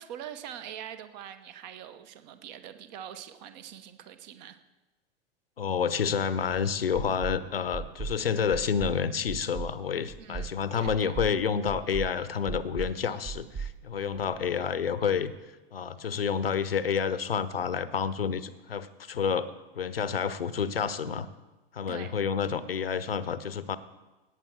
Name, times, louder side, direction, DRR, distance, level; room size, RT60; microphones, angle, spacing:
voice 1, 0.0-4.6 10.2-11.2 21.9-22.1, right 10 dB, 45° right, 11 dB, 1.1 m, -43 dB
voice 2, 5.6-15.3 15.7-21.3 21.7-23.8, left 7 dB, 75° left, 15 dB, 0.8 m, -29 dB
sound 1, 6.5-6.6 6.9-7.4 7.7-8.2 8.5-9.0 9.3-9.7 10.1-10.5 10.9-11.3 11.7-12.1 12.5-12.9 13.2-14.5, right 6 dB, 25° right, 0.8 m, -37 dB
18.0 x 8.7 x 4.6 m, 1.1 s
figure-of-eight pair, 90°, 29 cm